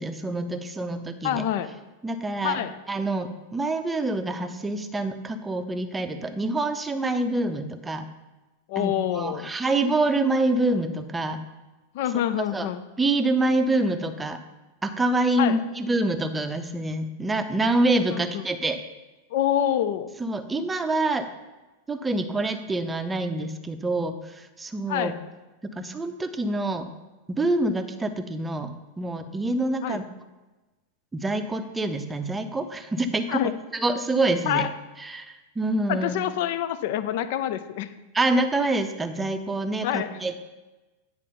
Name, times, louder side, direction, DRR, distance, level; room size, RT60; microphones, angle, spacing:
voice 1, 0.0-1.4 2.0-2.6 2.9-8.1 8.8-11.4 12.5-12.7 13.0-14.4 14.8-18.8 20.2-21.3 21.9-25.1 25.7-26.9 27.3-28.7 29.0-30.0 31.1-33.4 33.7-34.7 35.0-36.2 38.1-40.4, right 2 dB, 10° right, 7 dB, 0.6 m, -26 dB
voice 2, 1.2-1.7 2.4-2.8 8.7-9.5 11.9-12.8 15.4-15.6 18.1-18.4 19.3-20.1 24.9-25.1 29.8-30.0 33.3-33.6 34.5-34.7 35.9-37.9 39.8-40.2, left 11 dB, 50° left, 13 dB, 0.5 m, -26 dB
9.9 x 4.3 x 5.6 m, 1.1 s
figure-of-eight pair, 90°, 0 cm